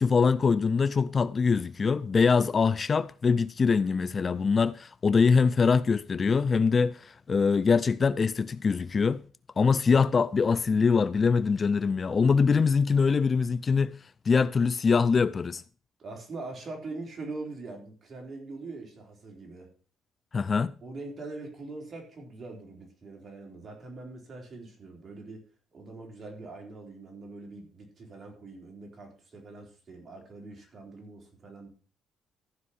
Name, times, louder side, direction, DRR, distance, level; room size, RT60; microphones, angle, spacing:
voice 1, 0.0-9.2 9.6-13.9 14.3-15.6 20.3-20.7, left 5 dB, 35° left, 0.4 m, -23 dB
voice 2, 16.0-19.7 20.8-25.4 25.7-31.7, right 3 dB, 40° right, 3.9 m, -42 dB
14.5 x 5.4 x 5.6 m
cardioid pair, 105°, 0 cm